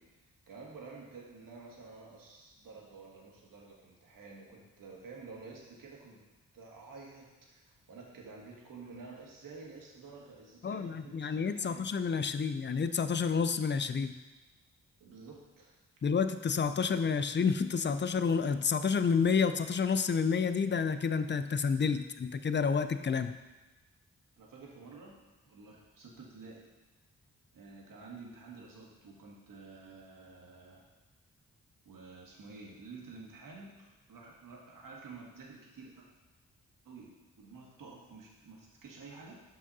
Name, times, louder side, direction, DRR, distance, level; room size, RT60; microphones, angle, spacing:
voice 1, 0.0-6.2 6.5-12.0 15.0-15.7 24.4-26.6 27.5-30.9 31.8-36.1 36.8-39.4, right 4 dB, 70° right, -2 dB, 1.7 m, -50 dB
voice 2, 10.6-14.1 16.0-23.4, left 5 dB, 35° left, 11 dB, 0.5 m, -29 dB
5.9 x 4.8 x 5.5 m, 1.2 s
supercardioid pair, 45°, 34 cm